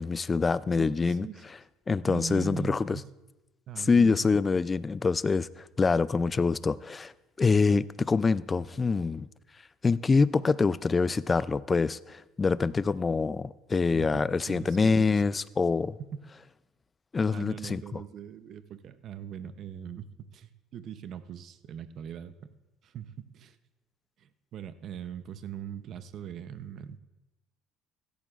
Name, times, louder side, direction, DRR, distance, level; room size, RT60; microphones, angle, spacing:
voice 1, 0.0-1.3 1.9-3.0 3.9-5.5 5.8-7.1 7.4-9.3 9.8-16.0 17.1-18.0, left 4 dB, 20° left, 18 dB, 0.3 m, -25 dB
voice 2, 0.8-1.4 2.1-3.1 3.7-4.2 13.9-15.3 16.0-16.2 17.3-22.3 22.8-23.6 24.2-27.0, right 8 dB, 50° right, 12 dB, 0.7 m, -41 dB
16.5 x 13.5 x 2.4 m, 1.0 s
cardioid pair, 115°, 0 cm